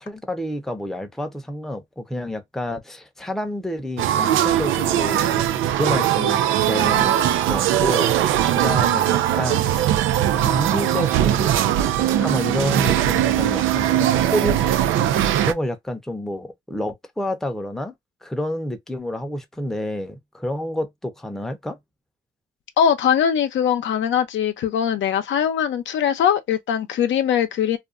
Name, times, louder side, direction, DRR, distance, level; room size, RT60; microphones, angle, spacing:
voice 1, 0.0-9.9 10.4-14.6 15.0-17.9 18.2-21.8, left 1 dB, ahead, 0.6 m, -29 dB
sound 1, 4.0-15.5, right 11 dB, 85° right, 0.4 m, -20 dB
voice 2, 22.8-27.8, left 8 dB, 70° left, 0.6 m, -21 dB
2.5 x 2.2 x 2.4 m
cardioid pair, 90°, 20 cm